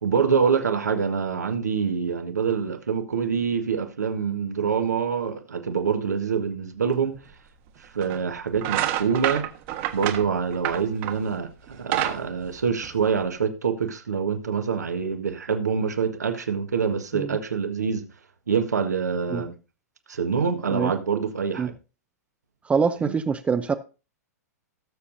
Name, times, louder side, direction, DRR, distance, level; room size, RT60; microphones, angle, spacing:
voice 1, 0.0-7.1 7.8-9.4 9.9-18.0 18.5-19.5 20.1-21.7 23.0-23.1, right 6 dB, 80° right, 1.5 m, -25 dB
sound 1, 7.3-7.4 8.0-8.2 8.6-11.3 11.7-13.3, right 12 dB, 45° right, 1.5 m, -28 dB
voice 2, 22.6-23.7, right 5 dB, 15° right, 0.6 m, -24 dB
18.5 x 7.0 x 2.7 m
figure-of-eight pair, 105°, 9 cm